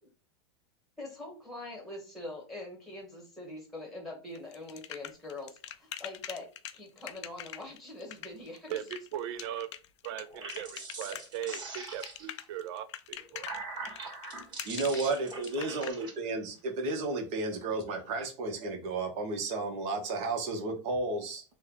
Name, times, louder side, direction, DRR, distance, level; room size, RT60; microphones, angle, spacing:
voice 1, 1.0-8.7, left 2 dB, ahead, 0 dB, 1.2 m, -43 dB
sound 1, 4.3-15.9, left 12 dB, 80° left, 0.4 m, -43 dB
voice 2, 8.7-9.7 10.0-13.6, right 10 dB, 65° right, 13 dB, 0.5 m, -39 dB
sound 2, 10.2-12.4 13.1-16.1, right 3 dB, 30° right, 1.7 m, -42 dB
voice 3, 14.7-21.4, right 3 dB, 45° right, 3 dB, 1.1 m, -33 dB
3.2 x 2.2 x 3.8 m, 0.34 s
supercardioid pair, 120°, 15 cm